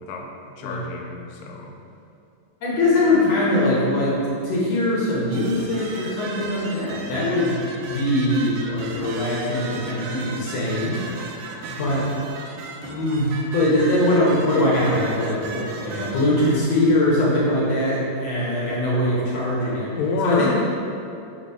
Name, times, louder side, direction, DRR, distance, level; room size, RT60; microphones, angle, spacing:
voice 1, 0.0-1.7 20.0-20.5, left 4 dB, 80° left, 1 dB, 2.2 m, -28 dB
voice 2, 2.6-12.1 12.8-19.9 20.2-20.5, left 1 dB, 65° left, -6 dB, 1.8 m, -22 dB
sound 1, 5.3-16.6, right 3 dB, 80° right, 2.4 m, -36 dB
6.4 x 4.0 x 5.4 m, 2.6 s
omnidirectional pair, 4.2 m